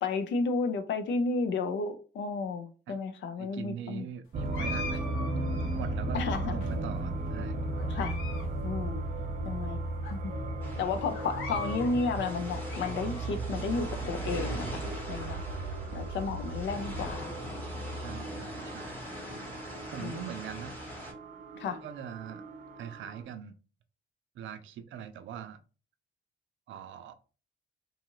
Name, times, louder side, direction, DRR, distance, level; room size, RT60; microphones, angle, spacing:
voice 1, 0.0-4.1 6.1-6.6 7.9-8.2 8.6-9.0 9.4-9.8 10.1-10.3 10.8-17.2 20.0-20.2 21.6-21.8, left 4 dB, 65° left, 0.5 m, -32 dB
voice 2, 3.4-5.0 5.7-7.6 18.0-19.0 19.9-20.8 21.8-22.4 22.8-23.6 24.3-25.6 26.7-27.1, right 8 dB, 75° right, 0.5 m, -42 dB
sound 1, 4.3-23.2, right 2 dB, 35° right, 0.7 m, -36 dB
sound 2, 4.5-5.9 6.6-7.3 7.8-8.5 8.8-8.9 9.5-9.6 10.0-10.1 11.1-11.9 12.4-13.4, left 3 dB, 85° left, 0.9 m, -42 dB
sound 3, 10.6-21.1, left 1 dB, 10° left, 0.9 m, -43 dB
2.7 x 2.4 x 2.9 m
cardioid pair, 90°, 20 cm